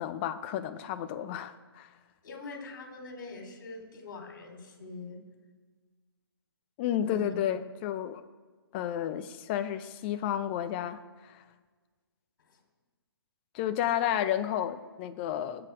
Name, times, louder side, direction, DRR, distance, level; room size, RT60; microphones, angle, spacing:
voice 1, 0.0-1.9 6.8-8.2 8.7-11.4 13.5-15.7, left 10 dB, 25° left, 10 dB, 0.8 m, -32 dB
voice 2, 2.2-5.2 7.0-7.3 12.5-12.6, left 3 dB, 50° left, 2 dB, 3.8 m, -43 dB
20.5 x 8.0 x 4.9 m, 1.4 s
hypercardioid pair, 145°, 13 cm